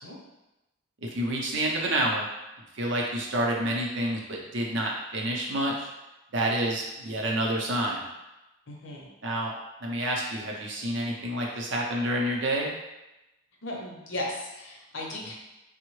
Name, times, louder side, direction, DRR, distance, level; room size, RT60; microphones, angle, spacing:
voice 1, 1.0-2.3 2.7-5.9 6.3-8.0 9.2-9.5 9.8-12.7, right 1 dB, 55° right, -1 dB, 0.5 m, -28 dB
voice 2, 8.7-9.1 13.6-15.3, left 1 dB, 60° left, -2 dB, 0.6 m, -36 dB
3.5 x 2.0 x 3.1 m, 0.98 s
head